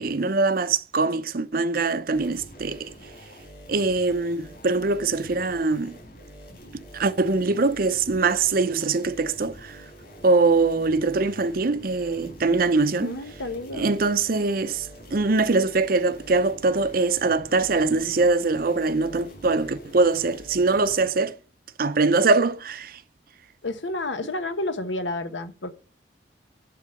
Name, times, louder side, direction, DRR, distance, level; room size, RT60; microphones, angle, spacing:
voice 1, 0.0-2.9 3.7-6.0 6.9-9.8 10.2-13.2 13.7-21.3 21.8-23.0, right 3 dB, 50° right, 0.7 m, -23 dB
sound 1, 2.1-21.1, equal, 50° left, 4.3 m, -46 dB
voice 2, 13.0-13.9 23.6-25.7, left 2 dB, 85° left, 1.1 m, -30 dB
11.0 x 3.9 x 7.6 m
head